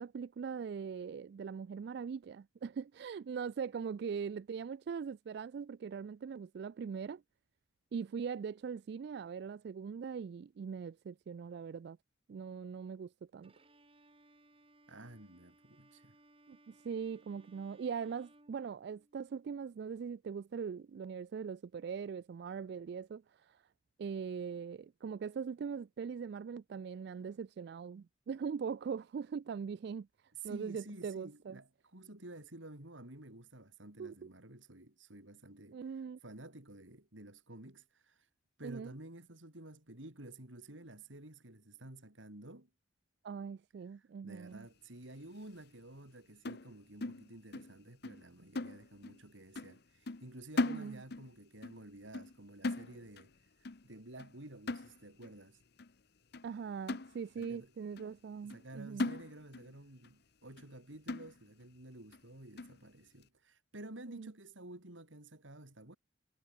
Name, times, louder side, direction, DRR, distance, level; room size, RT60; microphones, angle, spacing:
voice 1, 0.0-7.2 7.9-12.0 12.3-13.5 16.5-23.6 24.0-30.1 30.4-31.6 34.0-34.1 35.7-36.2 38.6-38.9 43.2-44.7 50.7-51.0 56.4-59.1 64.1-64.3, right 6 dB, 60° right, 0.3 m, -41 dB
Bowed string instrument, 13.4-19.3, right 2 dB, 30° right, 4.8 m, -65 dB
voice 2, 14.9-16.2 30.3-35.8 36.2-38.3 38.6-42.7 44.2-53.3 53.8-55.6 57.4-57.7 58.4-66.0, right 1 dB, 85° right, 4.3 m, -51 dB
sound 1, 46.5-47.8 48.0-48.3 48.6-49.3 49.6-49.8 50.1-51.3 51.6-51.8 52.1-52.4 52.6-53.3 53.7-53.9 54.2-54.4 54.7-55.3 55.8-55.9 56.3-56.5 56.9-57.6 58.0-58.1 58.5-58.7 59.0-59.7 60.0-60.1 60.6-60.7 61.1-61.6 62.1-62.2 62.6-62.8, left 2 dB, 55° left, 0.9 m, -39 dB
head